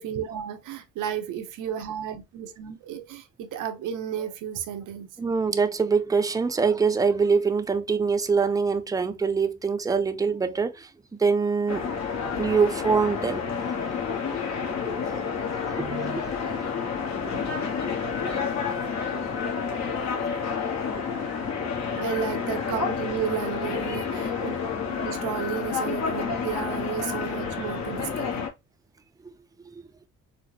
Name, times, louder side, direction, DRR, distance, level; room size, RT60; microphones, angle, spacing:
voice 1, 0.0-5.1 22.0-28.5, right 9 dB, 90° right, 0.8 m, -33 dB
voice 2, 5.2-10.9 11.2-11.8 12.2-13.4 14.9-15.1 15.8-16.2, right 5 dB, 10° right, 0.4 m, -24 dB
sound 1, 11.7-28.5, left 6 dB, 60° left, 1.1 m, -29 dB
4.0 x 2.1 x 3.1 m
cardioid pair, 90°, 30 cm